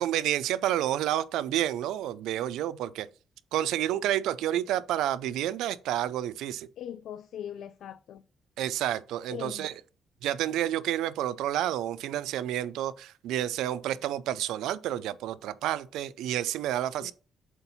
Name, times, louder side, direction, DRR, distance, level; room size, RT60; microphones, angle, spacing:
voice 1, 0.0-3.1 3.5-6.7 8.6-9.7 10.2-17.1, right 12 dB, 90° right, 0.4 m, -30 dB
voice 2, 6.8-8.2 9.3-9.7 17.0-17.1, left 10 dB, 75° left, 0.3 m, -40 dB
7.9 x 2.7 x 5.5 m
cardioid pair, 90°, 0 cm